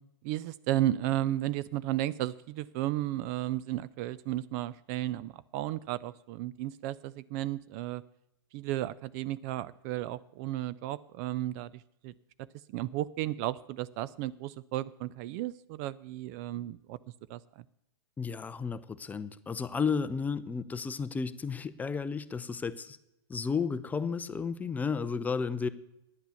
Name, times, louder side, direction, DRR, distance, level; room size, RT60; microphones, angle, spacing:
voice 1, 0.2-8.0 8.5-12.1 12.7-17.0 17.3-17.6, right 14 dB, 40° right, 18 dB, 0.3 m, -34 dB
voice 2, 18.2-23.0 23.3-25.7, left 5 dB, 10° left, 14 dB, 0.5 m, -33 dB
10.5 x 8.0 x 7.0 m, 0.84 s
hypercardioid pair, 115°, 14 cm